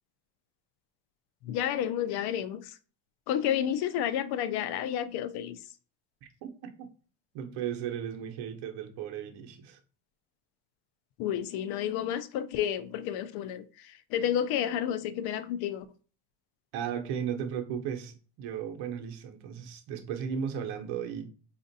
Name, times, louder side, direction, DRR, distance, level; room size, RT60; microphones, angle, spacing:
voice 1, 1.4-2.8 3.3-5.6 11.2-15.9, left 10 dB, 60° left, 0.5 m, -31 dB
voice 2, 6.2-6.7 7.3-9.8 16.7-21.3, right 8 dB, 65° right, 0.8 m, -35 dB
5.0 x 2.5 x 2.6 m
cardioid pair, 120°, 43 cm